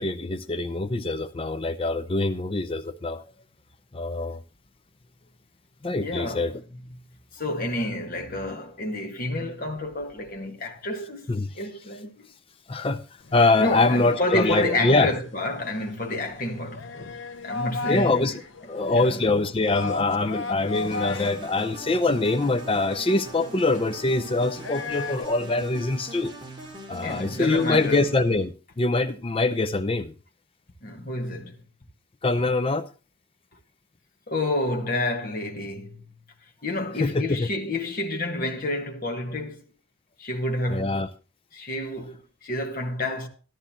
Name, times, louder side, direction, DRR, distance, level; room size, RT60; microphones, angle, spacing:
voice 1, 0.0-3.2 3.9-4.4 5.8-6.5 11.3-11.5 12.7-13.0 13.3-15.1 17.9-18.4 18.7-26.3 26.9-30.1 32.2-32.9 37.0-37.5 40.7-41.1, left 2 dB, 25° left, 0.5 m, -24 dB
voice 2, 6.0-6.5 7.3-11.3 11.5-12.3 13.6-17.1 17.4-18.2 18.8-19.1 27.0-28.0 30.8-31.6 34.3-36.0 36.6-39.6 40.2-41.0 41.5-43.3, left 1 dB, 40° left, 1.5 m, -29 dB
sound 1, 13.2-25.2, left 3 dB, 60° left, 0.8 m, -37 dB
sound 2, 20.7-28.4, right 1 dB, 25° right, 2.7 m, -41 dB
13.0 x 12.0 x 2.9 m
head